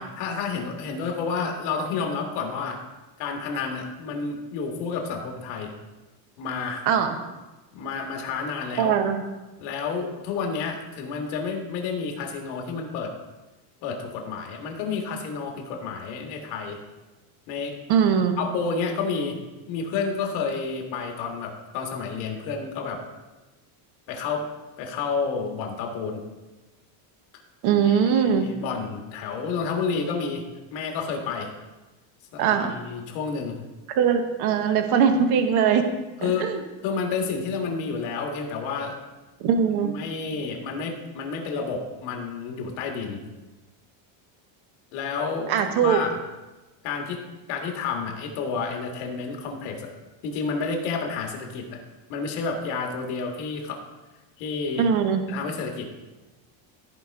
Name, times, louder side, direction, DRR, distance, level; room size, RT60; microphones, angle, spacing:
voice 1, 0.0-2.8 3.2-5.7 6.4-6.9 7.7-9.0 9.6-13.1 13.8-16.8 17.5-17.8 18.4-19.4 19.7-23.0 24.1-24.5 24.8-26.2 27.7-30.4 30.7-31.5 32.3-33.6 36.2-36.6 36.8-39.0 39.7-43.2 44.9-46.2 46.8-47.2 47.5-49.9 50.2-51.8 52.1-53.8 54.4-54.9 55.3-55.9, left 5 dB, 70° left, 2 dB, 1.8 m, -30 dB
voice 2, 8.8-9.2 17.9-18.4 27.6-28.5 32.4-32.7 33.9-35.8 36.2-36.6 39.4-39.9 45.5-46.0 54.8-55.2, right 7 dB, 50° right, 6 dB, 0.9 m, -21 dB
14.0 x 5.0 x 3.5 m, 1.1 s
cardioid pair, 170°, 49 cm